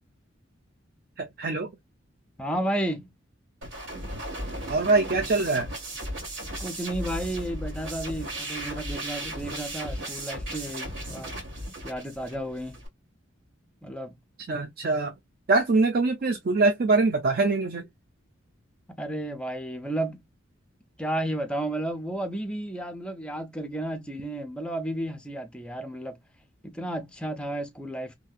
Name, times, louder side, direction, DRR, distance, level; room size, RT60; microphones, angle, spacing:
voice 1, 1.2-1.7 4.7-5.7 14.5-15.1 15.5-17.8, right 3 dB, 50° right, 0.5 m, -23 dB
voice 2, 2.4-3.1 6.6-11.3 11.8-12.8 13.8-14.2 14.5-14.6 18.9-20.2 21.0-26.2 26.6-28.2, right 1 dB, 5° left, 0.5 m, -32 dB
sound 1, 3.6-12.9, right 1 dB, 75° right, 1.8 m, -36 dB
2.8 x 2.6 x 2.3 m
head